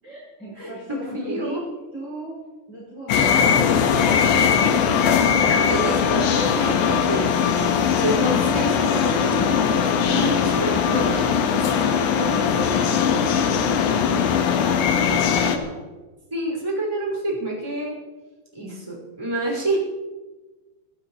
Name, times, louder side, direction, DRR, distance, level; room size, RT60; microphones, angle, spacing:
voice 1, 0.0-2.4 2.7-3.9 11.1-11.4 13.0-15.0, right 2 dB, 25° right, -7 dB, 7.7 m, -38 dB
voice 2, 1.1-1.6 5.4-7.6 8.0-11.3 12.2-12.7 16.3-18.0 18.5-19.8, right 1 dB, 5° right, -2 dB, 5.4 m, -28 dB
sound 1, 3.1-15.6, left 7 dB, 85° left, 3.7 m, -20 dB
28.0 x 15.5 x 3.2 m, 1.2 s
omnidirectional pair, 5.0 m